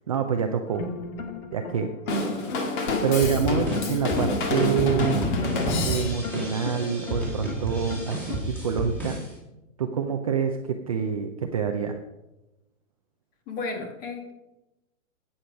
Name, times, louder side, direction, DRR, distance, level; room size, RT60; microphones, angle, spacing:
voice 1, 0.1-0.9 1.5-1.9 3.0-5.3 5.8-9.2 9.8-12.0, right 7 dB, 25° right, 4 dB, 0.5 m, -26 dB
sound 1, 0.7-8.4, left 5 dB, 85° left, 1.8 m, -37 dB
Drum kit / Drum, 2.1-6.4, left 2 dB, 35° left, 2.2 m, -27 dB
sound 2, 2.9-9.3, right 1 dB, 5° left, 2.6 m, -32 dB
voice 2, 13.5-14.3, left 3 dB, 20° left, 4 dB, 1.6 m, -33 dB
12.0 x 8.7 x 5.2 m, 0.96 s
hypercardioid pair, 165°, 41 cm